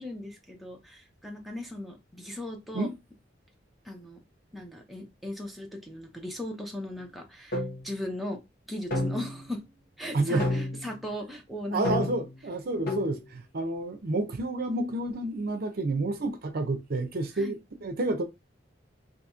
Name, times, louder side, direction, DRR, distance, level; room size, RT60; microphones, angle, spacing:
voice 1, 0.0-2.9 3.8-4.2 4.5-8.4 8.7-9.6 10.0-12.0 17.4-17.6, left 1 dB, ahead, 0.7 m, -38 dB
sound 1, 7.5-7.9 8.9-9.5 10.4-10.9 11.8-12.3 12.9-13.2, left 2 dB, 55° left, 1.0 m, -30 dB
voice 2, 11.7-18.2, right 2 dB, 55° right, 0.6 m, -29 dB
2.8 x 2.7 x 3.5 m
head